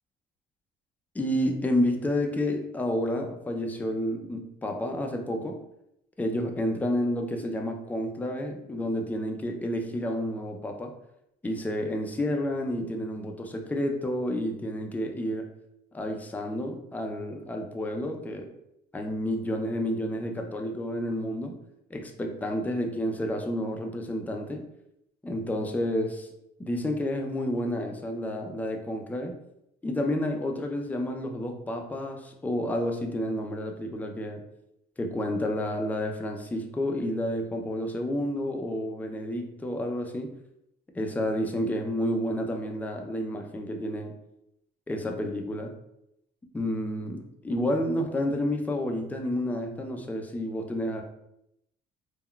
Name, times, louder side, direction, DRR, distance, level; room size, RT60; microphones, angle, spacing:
voice 1, 1.1-5.6 6.2-10.9 11.4-15.5 15.9-18.5 18.9-21.6 21.9-24.6 25.2-26.3 26.6-29.3 29.8-34.4 35.0-40.3 40.9-44.1 44.9-45.7 46.5-51.0, left 1 dB, 10° left, 3 dB, 0.4 m, -30 dB
3.6 x 2.2 x 2.2 m, 0.81 s
cardioid pair, 110°, 17 cm